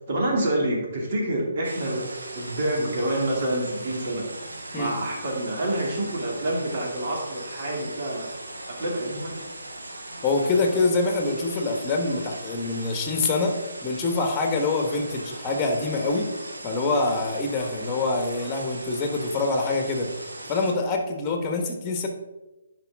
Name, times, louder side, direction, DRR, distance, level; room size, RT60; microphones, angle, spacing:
voice 1, 0.1-4.3 4.7-8.3 8.7-9.4, right 1 dB, 50° right, -2 dB, 2.8 m, -27 dB
sound 1, 1.6-20.7, right 1 dB, 85° right, 1.6 m, -39 dB
voice 2, 10.2-16.3 16.6-20.1 20.5-22.1, left 3 dB, 20° left, 3 dB, 1.5 m, -25 dB
10.5 x 5.1 x 3.7 m, 1.1 s
hypercardioid pair, 145°, 0 cm